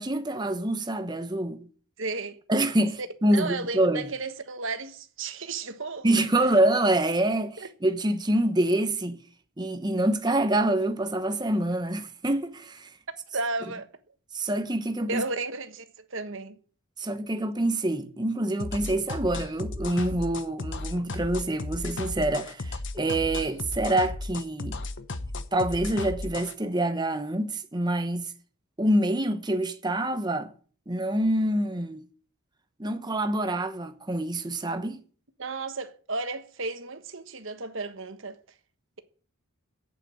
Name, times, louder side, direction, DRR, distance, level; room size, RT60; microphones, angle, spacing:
voice 1, 0.0-1.7 2.5-4.1 6.0-9.2 9.6-12.9 14.3-15.2 17.0-24.8 25.5-28.3 28.8-30.5 30.9-32.0 32.8-35.0, right 1 dB, 20° right, 1.0 m, -26 dB
voice 2, 2.0-2.4 3.3-6.2 7.6-7.7 13.3-13.9 15.1-15.8 16.1-16.6 35.4-38.4, right 3 dB, 60° right, 1.3 m, -33 dB
sound 1, 18.6-26.5, left 2 dB, 55° left, 1.0 m, -34 dB
8.6 x 8.2 x 9.0 m
head